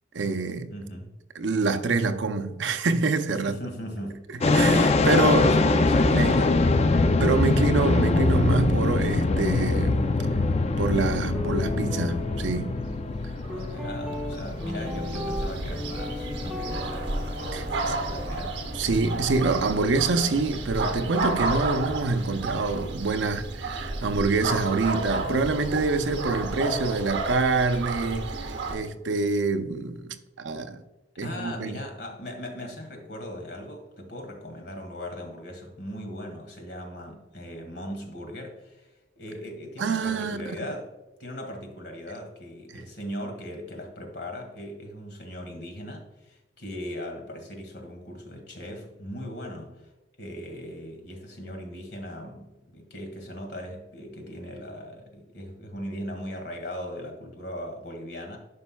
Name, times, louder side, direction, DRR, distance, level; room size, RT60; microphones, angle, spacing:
voice 1, 0.1-0.7 1.4-3.6 4.5-5.6 6.1-6.4 7.2-10.2 10.8-12.7 17.5-17.7 18.7-30.8 31.2-31.8 39.8-40.5, right 3 dB, 90° right, 0.6 m, -26 dB
voice 2, 0.7-1.1 3.4-6.8 13.5-18.5 31.2-40.9 41.2-49.8 50.2-58.4, equal, 65° left, 1.9 m, -38 dB
sound 1, 4.4-21.1, left 3 dB, 35° left, 0.4 m, -24 dB
Guitar, 11.3-19.5, left 2 dB, ahead, 1.4 m, -37 dB
sound 2, 13.4-28.8, right 2 dB, 70° right, 1.1 m, -32 dB
11.5 x 5.3 x 2.2 m
head